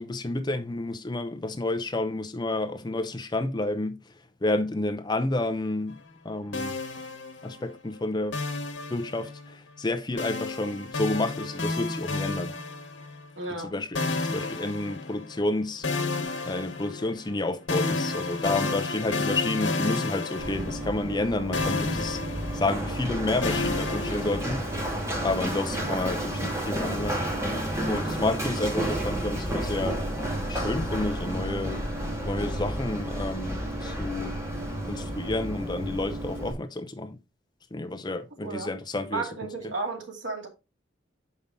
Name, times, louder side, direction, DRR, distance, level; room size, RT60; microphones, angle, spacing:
voice 1, 0.0-4.0 4.4-6.0 6.2-6.7 7.4-8.4 8.9-12.5 13.6-15.9 16.4-22.2 22.5-24.7 25.2-27.2 27.9-30.0 30.5-31.8 32.3-34.3 34.9-37.2 37.7-39.3 39.6-39.7, left 2 dB, 20° left, 0.6 m, -30 dB
sound 1, 6.5-7.8 8.3-9.5 10.2-13.3 13.9-15.5 15.8-21.3 21.5-24.8, left 3 dB, 70° left, 1.2 m, -31 dB
voice 2, 13.4-13.8 38.4-38.7 39.1-40.5, right 3 dB, 75° right, 2.2 m, -33 dB
Run, 20.4-36.5, right 1 dB, 15° right, 1.9 m, -31 dB
6.9 x 5.4 x 3.7 m
head